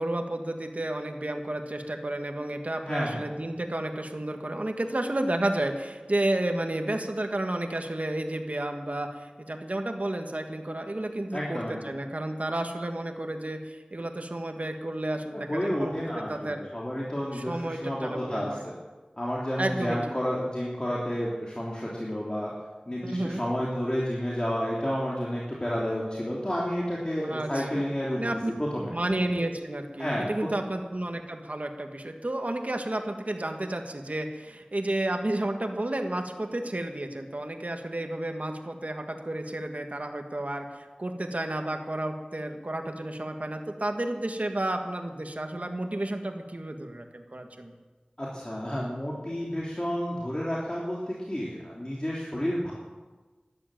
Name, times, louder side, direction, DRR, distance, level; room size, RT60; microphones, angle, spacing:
voice 1, 0.0-16.6 17.3-18.6 19.6-20.0 23.0-23.4 27.2-28.5 28.9-47.7, right 1 dB, 60° right, 4 dB, 1.7 m, -31 dB
voice 2, 2.8-3.2 11.3-11.8 15.3-18.7 19.2-22.5 22.9-28.9 30.0-30.3 48.2-52.7, equal, 35° left, -5 dB, 3.2 m, -31 dB
13.0 x 11.5 x 9.0 m, 1.3 s
wide cardioid pair, 45°, 3 cm